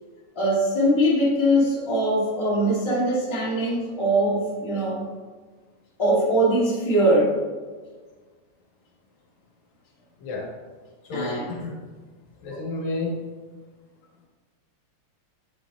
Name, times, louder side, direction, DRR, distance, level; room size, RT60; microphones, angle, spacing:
voice 1, 0.3-5.0 6.0-7.3 11.1-11.5, right 1 dB, 10° left, -7 dB, 1.7 m, -22 dB
voice 2, 11.1-11.7 12.4-13.2, left 2 dB, 75° left, -3 dB, 2.7 m, -31 dB
8.3 x 8.0 x 2.4 m, 1.4 s
omnidirectional pair, 3.3 m